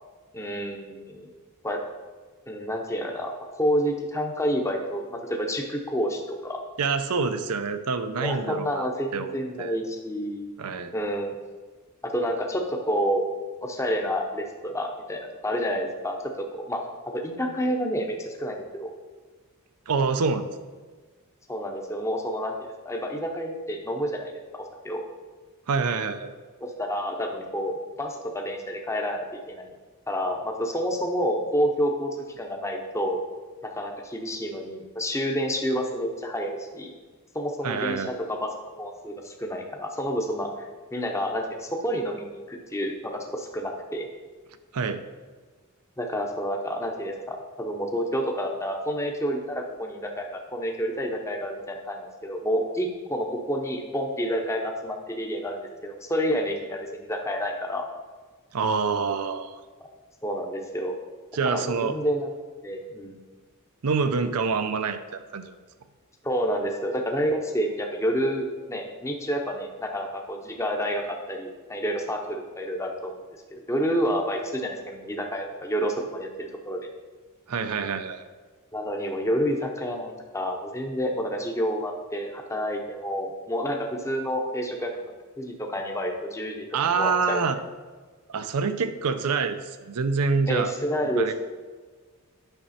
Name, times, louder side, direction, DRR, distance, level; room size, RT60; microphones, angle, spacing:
voice 1, 0.3-1.3 1.6-1.8 2.5-3.3 3.6-6.6 8.2-10.5 10.9-11.3 12.0-13.2 13.6-18.9 21.5-22.5 22.8-25.0 26.6-29.7 30.1-33.2 33.8-36.9 37.3-38.5 38.8-40.5 40.9-44.1 46.0-57.9 60.2-61.0 61.4-62.3 62.6-63.2 66.2-73.2 73.5-76.9 78.7-87.4 90.5-91.3, equal, 15° left, 2 dB, 0.7 m, -29 dB
voice 2, 6.8-9.3 9.6-9.8 10.6-10.9 19.9-20.4 25.7-26.3 37.6-38.1 44.7-45.0 58.5-59.5 61.3-62.0 63.8-65.5 77.5-78.3 86.7-87.6 88.3-90.7 91.2-91.3, right 5 dB, 85° right, 9 dB, 0.6 m, -26 dB
9.1 x 6.0 x 4.2 m, 1.4 s
head